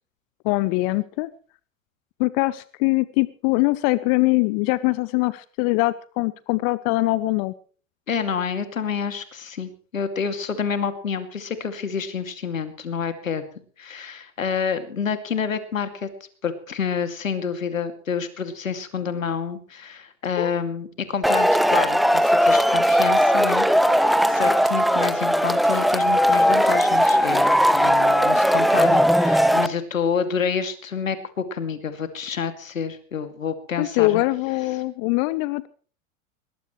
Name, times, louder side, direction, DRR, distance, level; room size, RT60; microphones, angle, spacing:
voice 1, 0.4-1.3 2.2-7.5 20.4-20.5 33.8-35.7, left 21 dB, 45° left, 19 dB, 0.8 m, -22 dB
voice 2, 8.1-13.4 13.8-16.1 16.4-34.2, left 6 dB, 80° left, 9 dB, 2.6 m, -28 dB
Male speech man speaking / Shout / Clapping, 21.2-29.7, equal, ahead, 0.9 m, -18 dB
21.5 x 19.5 x 3.2 m, 0.43 s
figure-of-eight pair, 85°, 39 cm